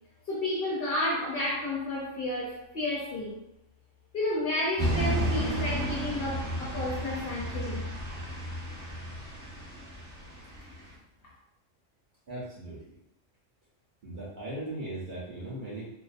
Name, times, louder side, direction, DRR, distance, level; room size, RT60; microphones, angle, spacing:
voice 1, 0.3-3.4 4.1-7.9, left 1 dB, 60° left, -4 dB, 0.6 m, -31 dB
sound 1, 4.8-10.9, equal, 10° right, 1.1 m, -33 dB
voice 2, 12.3-12.9 14.0-15.9, right 1 dB, 50° right, -7 dB, 0.6 m, -38 dB
2.5 x 2.1 x 2.4 m, 0.82 s
omnidirectional pair, 1.3 m